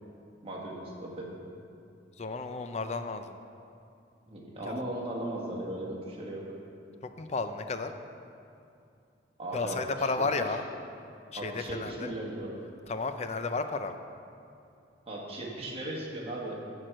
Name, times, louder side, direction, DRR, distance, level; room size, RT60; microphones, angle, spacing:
voice 1, 0.4-1.3 4.3-6.4 9.4-9.8 11.3-12.5 15.1-16.6, right 1 dB, 30° right, -3 dB, 1.6 m, -37 dB
voice 2, 2.2-3.4 4.6-4.7 7.2-7.9 9.5-10.6 11.3-12.1 12.9-13.9, left 3 dB, 35° left, 8 dB, 0.5 m, -32 dB
10.5 x 4.7 x 7.8 m, 2.6 s
head